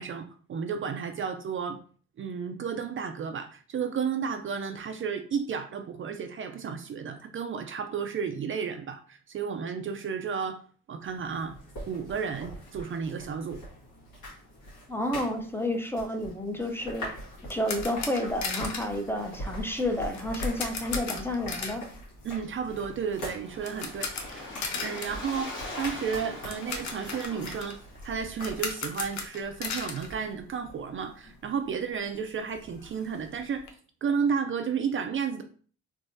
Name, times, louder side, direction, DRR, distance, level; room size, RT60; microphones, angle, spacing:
voice 1, 0.0-1.8 2.2-10.6 10.9-11.6 11.9-13.6 22.2-24.5 24.8-27.8 28.0-33.6 34.0-35.4, right 6 dB, 45° right, 7 dB, 0.4 m, -32 dB
sound 1, 11.0-28.8, equal, 85° left, 1.6 m, -43 dB
voice 2, 14.9-17.1 17.5-21.8, left 1 dB, 10° left, 4 dB, 0.6 m, -30 dB
sound 2, 17.0-31.0 31.2-31.4 31.8-31.9 32.1-33.7, left 4 dB, 70° left, 0.8 m, -38 dB
Waves surf, 22.5-28.2, left 2 dB, 40° left, 1.5 m, -42 dB
3.4 x 2.9 x 2.6 m, 0.43 s
cardioid pair, 90°, 30 cm